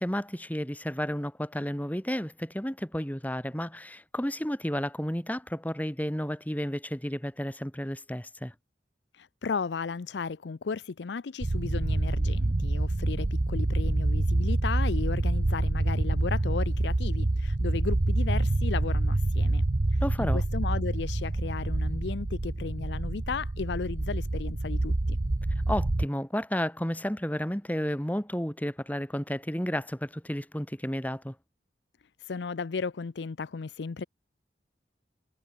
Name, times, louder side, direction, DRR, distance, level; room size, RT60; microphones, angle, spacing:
voice 1, 0.0-8.5 20.0-20.4 25.7-31.4, equal, 10° left, 2.5 m, -32 dB
voice 2, 9.1-19.6 19.9-25.2 32.3-34.0, left 5 dB, 70° left, 0.5 m, -35 dB
sound 1, 11.4-26.1, right 2 dB, 45° right, 0.8 m, -27 dB
head